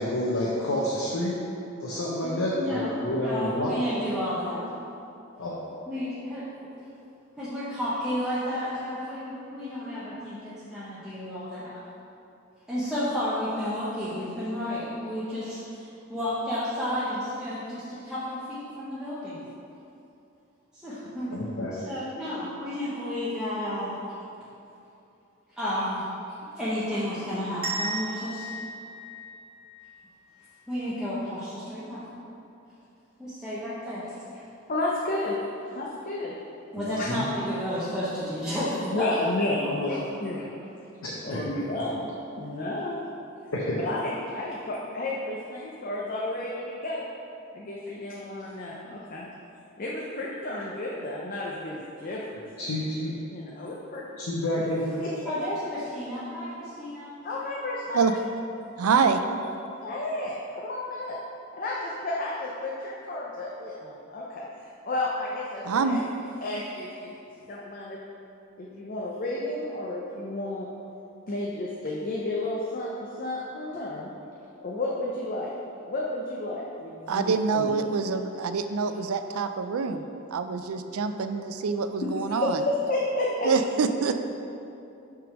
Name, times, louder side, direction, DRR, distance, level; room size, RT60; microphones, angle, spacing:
voice 1, 0.0-1.3 1.8-3.7 5.4-5.6 21.3-21.7 36.7-37.2 41.0-41.6 43.5-43.8 52.6-53.2 54.1-55.0, left 1 dB, 75° left, -6 dB, 0.9 m, -29 dB
voice 2, 2.2-4.6 5.9-6.7 7.4-11.8 12.7-19.4 20.7-21.3 21.7-24.0 25.5-26.1 26.5-28.5 30.7-32.0 33.2-34.4 36.7-39.1 39.6-40.0 42.4-42.5 44.2-44.3 55.3-57.1, left 1 dB, 5° right, -12 dB, 0.9 m, -32 dB
sound 1, 27.6-30.4, right 2 dB, 45° right, 1.2 m, -36 dB
voice 3, 34.7-35.4 35.7-36.3 37.0-37.1 38.9-40.5 41.2-43.0 43.8-47.0 47.5-49.3 49.8-52.4 53.3-54.0 55.0-55.3 57.2-58.2 59.8-61.2 61.5-66.0 66.4-67.1 67.5-68.0 68.6-70.7 71.3-74.1 74.6-75.5 75.9-77.7 82.0-82.1 82.4-83.5, left 2 dB, 40° left, -3 dB, 0.6 m, -32 dB
voice 4, 58.8-59.2 65.6-66.0 77.1-82.6 83.4-84.2, right 5 dB, 90° right, 8 dB, 0.4 m, -26 dB
5.9 x 3.7 x 6.0 m, 2.7 s
head